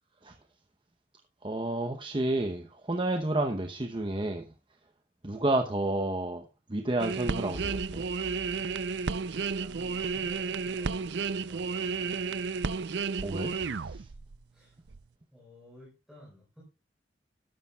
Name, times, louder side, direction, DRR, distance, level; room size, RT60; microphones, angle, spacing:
voice 1, 1.4-4.5 5.2-8.0 13.2-14.1, right 2 dB, 30° right, 0.8 m, -31 dB
sound 1, 7.0-14.4 14.9-15.0, right 5 dB, 85° right, 0.5 m, -32 dB
sound 2, 7.5-13.7, equal, 80° left, 1.7 m, -48 dB
voice 2, 9.0-12.2 14.5-14.8 15.3-16.6, left 1 dB, ahead, 4.6 m, -54 dB
13.0 x 12.0 x 2.3 m
head